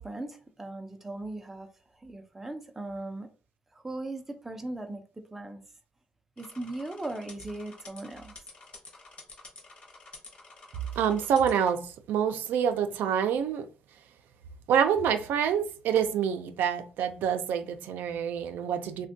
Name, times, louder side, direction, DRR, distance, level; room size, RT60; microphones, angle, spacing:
voice 1, 0.0-1.7 2.0-3.3 3.7-5.0 5.3-5.6 6.4-8.3, right 2 dB, 10° right, 0.4 m, -38 dB
sound 1, 6.4-11.7, left 3 dB, 35° left, 0.8 m, -49 dB
voice 2, 11.0-13.7 14.7-19.1, right 8 dB, 85° right, 0.4 m, -27 dB
3.3 x 2.2 x 2.6 m
cardioid pair, 165°, 3 cm